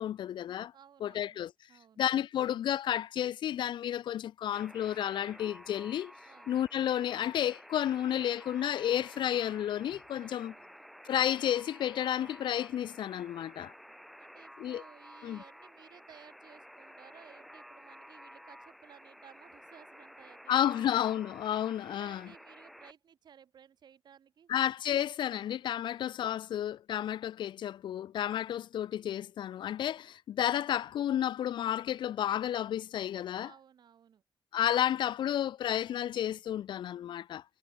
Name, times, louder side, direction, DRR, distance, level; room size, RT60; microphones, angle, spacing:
voice 1, 0.0-0.7 1.0-1.5 2.0-6.1 6.5-10.5 11.1-13.7 14.6-14.8 15.2-15.4 20.5-22.3 24.5-33.5 34.5-37.4, left 11 dB, 70° left, 0.6 m, -31 dB
voice 2, 0.7-1.4 1.7-2.0 6.3-6.5 10.2-10.7 14.2-21.3 21.8-24.5 33.4-34.2, right 8 dB, 60° right, 7.3 m, -58 dB
Alarm, 4.5-22.9, equal, ahead, 1.1 m, -52 dB
cardioid pair, 130°, 8 cm